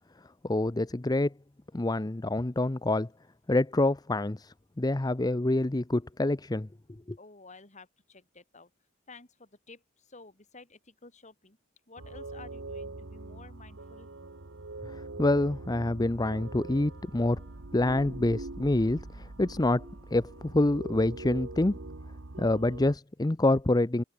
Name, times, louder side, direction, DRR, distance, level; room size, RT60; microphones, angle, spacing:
voice 1, 0.4-1.3 1.7-3.1 3.5-6.7 7.1-7.2 14.8-17.4 17.7-21.8 22.4-24.0, left 2 dB, 20° left, 0.6 m, -27 dB
voice 2, 7.2-8.7 9.1-11.6 11.9-14.1, left 3 dB, 40° left, 4.3 m, -52 dB
sound 1, 12.0-22.9, right 2 dB, 90° right, 1.4 m, -42 dB
head